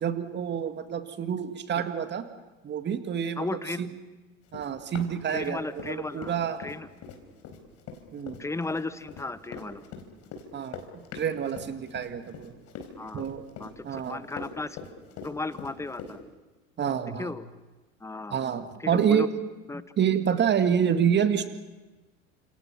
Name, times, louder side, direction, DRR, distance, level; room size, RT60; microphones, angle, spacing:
voice 1, 0.0-2.2 2.6-3.5 3.8-3.9 4.5-6.6 8.1-8.4 10.5-10.8 11.1-12.5 13.1-13.4 13.8-14.2 16.8-17.3 18.3-19.3 20.0-21.5, right 8 dB, 25° right, 9 dB, 2.0 m, -27 dB
voice 2, 3.4-3.8 5.3-6.3 6.6-6.9 8.4-9.8 13.0-13.2 13.6-14.8 15.2-16.2 17.2-17.5 18.0-18.4 18.8-19.3 19.7-19.8, left 3 dB, 5° left, 15 dB, 1.0 m, -35 dB
Run, 4.5-5.9 6.2-16.2, left 6 dB, 40° left, 4.4 m, -42 dB
30.0 x 27.5 x 6.0 m, 1.2 s
figure-of-eight pair, 85°, 39 cm